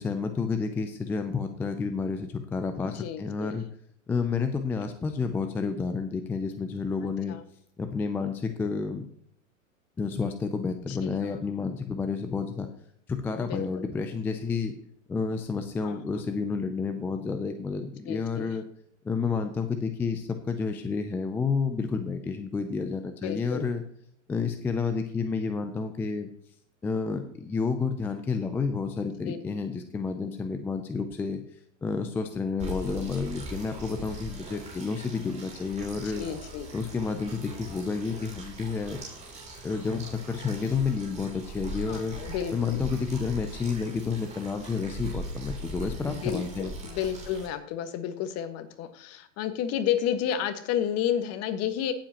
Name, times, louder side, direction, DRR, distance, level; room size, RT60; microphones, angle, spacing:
voice 1, 0.0-3.7 4.1-7.4 7.8-9.0 10.0-12.7 13.1-14.7 15.1-18.6 19.0-23.8 24.3-26.3 26.8-31.4 31.8-36.3 36.7-39.0 39.6-46.7, left 5 dB, 5° left, 7 dB, 0.3 m, -30 dB
voice 2, 2.8-3.6 7.0-7.4 10.9-11.4 13.4-13.9 15.8-16.0 18.0-18.6 23.2-23.7 29.2-29.4 36.2-36.7 41.9-42.8 46.1-51.9, left 9 dB, 40° left, 9 dB, 1.4 m, -31 dB
sound 1, 32.6-47.5, right 1 dB, 15° right, 3.2 m, -40 dB
16.5 x 7.6 x 2.9 m, 0.67 s
hypercardioid pair, 120°, 40 cm